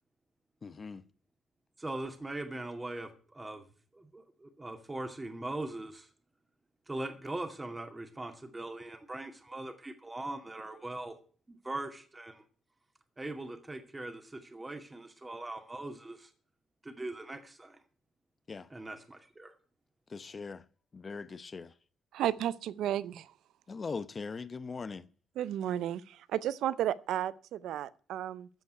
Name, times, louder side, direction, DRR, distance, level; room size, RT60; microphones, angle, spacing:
voice 1, 0.6-1.0 18.5-18.7 20.1-20.6 20.9-21.7 23.7-25.1, left 4 dB, 35° left, 0.9 m, -40 dB
voice 2, 1.8-3.6 3.9-6.1 6.9-11.1 11.5-12.4 13.2-16.3 16.8-17.8 18.7-19.5, right 2 dB, 20° right, 2.3 m, -41 dB
voice 3, 22.1-23.3 25.4-28.5, right 11 dB, 80° right, 0.7 m, -33 dB
15.0 x 5.5 x 9.4 m
cardioid pair, 90°, 0 cm